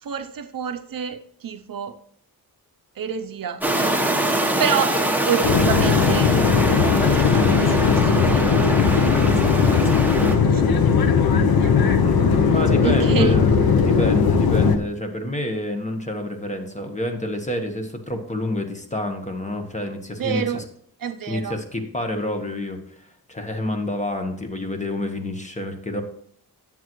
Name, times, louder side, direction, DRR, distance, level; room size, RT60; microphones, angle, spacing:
voice 1, 0.0-2.0 3.0-5.0 5.3-9.9 10.4-10.7 11.0-12.0 12.8-13.3 20.2-20.6 21.0-21.6, right 7 dB, 60° right, 9 dB, 0.6 m, -29 dB
sound 1, 3.6-10.3, right 1 dB, 5° right, 1.0 m, -24 dB
sound 2, 5.4-14.8, left 6 dB, 70° left, 0.8 m, -18 dB
voice 2, 12.0-13.5 13.8-20.6 21.3-26.0, left 1 dB, 20° left, 5 dB, 1.2 m, -28 dB
10.0 x 7.4 x 3.1 m, 0.63 s
wide cardioid pair, 110°, 38 cm